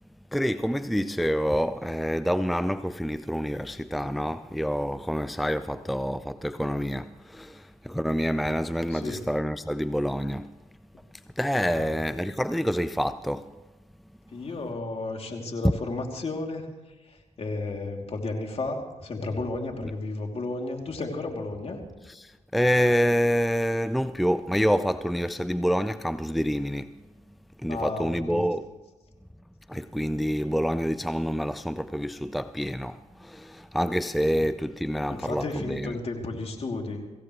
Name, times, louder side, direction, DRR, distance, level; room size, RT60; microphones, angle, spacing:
voice 1, 0.3-10.5 11.4-13.5 15.6-15.7 22.1-26.9 27.6-28.7 29.7-36.0, equal, ahead, 0.5 m, -27 dB
voice 2, 8.9-9.2 11.6-12.0 14.3-16.8 17.0-21.8 27.7-28.5 34.3-34.4 35.1-37.0, left 2 dB, 45° left, 3.0 m, -33 dB
24.5 x 15.5 x 3.2 m
supercardioid pair, 50°, 14 cm